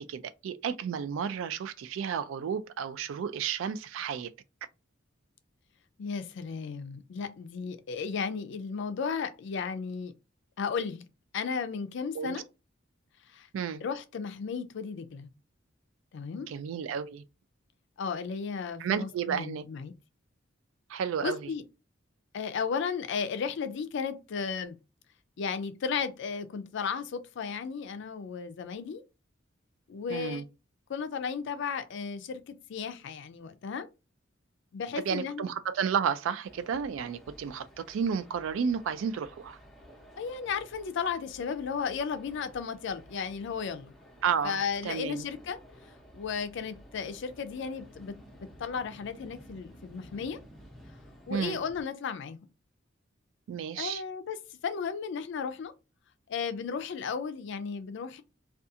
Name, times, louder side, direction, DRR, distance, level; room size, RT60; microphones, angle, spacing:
voice 1, 0.0-4.3 12.1-12.4 13.5-13.8 16.3-17.2 18.8-19.6 20.9-21.5 30.1-30.4 35.0-39.6 44.2-45.3 51.3-51.6 53.5-54.0, right 7 dB, 75° right, 0.3 m, -32 dB
voice 2, 6.0-10.1 10.6-11.0 11.3-12.4 13.3-13.5 13.8-15.3 16.1-16.5 18.0-19.9 21.2-21.6 22.3-24.8 25.4-29.0 29.9-30.4 30.9-33.9 34.7-35.5 40.2-43.9 44.4-45.6 46.1-48.1 48.6-50.4 51.3-52.4 53.8-54.4 54.6-55.7 56.3-58.2, left 6 dB, 65° left, 0.4 m, -34 dB
sound 1, 36.4-51.8, equal, ahead, 0.7 m, -53 dB
2.4 x 2.3 x 2.6 m
head